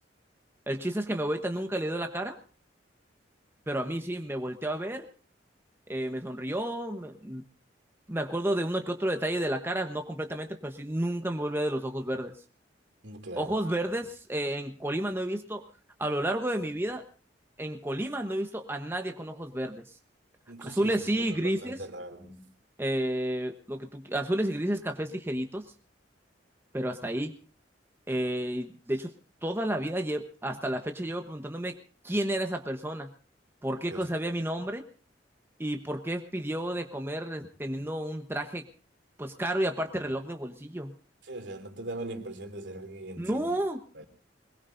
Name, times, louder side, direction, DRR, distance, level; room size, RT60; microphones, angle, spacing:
voice 1, 0.7-2.4 3.7-5.1 5.9-7.4 8.1-12.3 13.4-15.6 16.0-17.0 17.6-19.8 20.6-21.8 22.8-25.6 26.7-27.3 28.1-29.1 29.4-31.7 32.0-33.1 33.6-34.8 35.6-38.6 39.2-41.0 43.2-43.8, right 1 dB, 15° right, 5 dB, 1.1 m, -31 dB
voice 2, 13.0-13.6 20.5-22.5 33.9-34.1 41.2-43.6 43.9-44.1, right 2 dB, 80° right, 5 dB, 2.9 m, -41 dB
22.0 x 21.0 x 2.6 m, 0.37 s
head